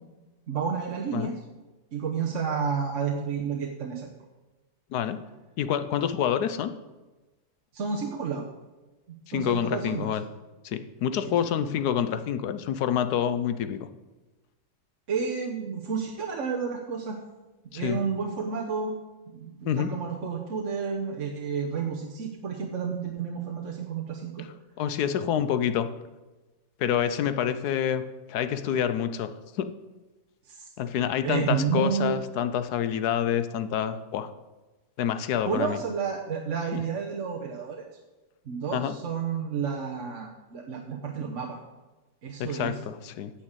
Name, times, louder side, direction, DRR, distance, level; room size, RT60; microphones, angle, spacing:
voice 1, 0.5-1.3 1.9-4.1 7.7-8.4 9.3-10.1 11.4-11.5 15.1-17.2 17.7-19.0 19.3-24.5 30.4-30.7 31.2-32.2 35.4-37.9 38.4-41.6 42.2-42.8, right 6 dB, 55° right, 0 dB, 1.2 m, -30 dB
voice 2, 5.6-6.7 9.3-10.2 10.6-13.8 17.7-18.0 19.6-19.9 24.8-25.9 26.8-29.3 29.6-29.7 30.8-34.3 35.0-35.8 36.7-36.8 38.7-38.9 42.4-43.3, left 9 dB, 85° left, 11 dB, 1.3 m, -27 dB
9.2 x 6.5 x 8.1 m, 1.2 s
omnidirectional pair, 1.7 m